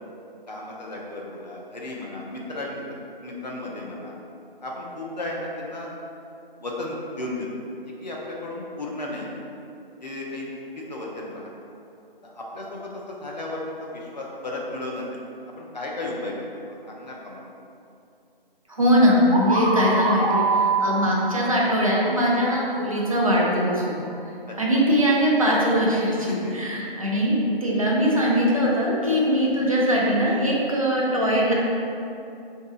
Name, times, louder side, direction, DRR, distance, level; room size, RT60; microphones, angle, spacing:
voice 1, 0.5-2.8 3.2-4.1 4.6-5.9 6.6-7.5 7.8-9.3 10.0-10.5 10.8-11.5 12.2-15.0 15.6-17.5 21.0-21.2 24.5-24.8 26.3-26.9 29.4-29.6, left 2 dB, 50° left, -3 dB, 0.6 m, -34 dB
voice 2, 18.7-24.1 24.6-26.3 26.6-31.5, equal, 35° right, -4 dB, 0.5 m, -21 dB
sound 1, 19.3-23.1, right 3 dB, 75° right, 0.7 m, -25 dB
3.7 x 2.7 x 2.3 m, 2.6 s
figure-of-eight pair, 165°, 29 cm